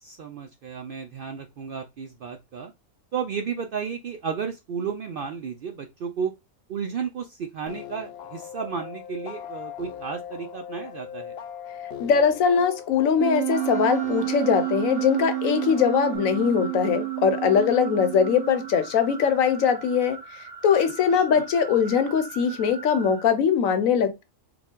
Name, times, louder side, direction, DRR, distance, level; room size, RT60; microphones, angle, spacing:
voice 1, 0.0-2.7 3.1-6.3 6.7-11.4 21.1-21.4, right 6 dB, 65° right, 0.5 m, -33 dB
sound 1, 7.7-16.2, left 9 dB, 60° left, 0.8 m, -40 dB
voice 2, 12.0-24.2, left 7 dB, 80° left, 1.1 m, -22 dB
Wind instrument woodwind instrument, 13.2-18.9, right 20 dB, 20° right, 1.0 m, -30 dB
sound 2, 13.5-23.3, right 4 dB, 45° right, 1.1 m, -42 dB
4.8 x 2.3 x 3.7 m
omnidirectional pair, 1.4 m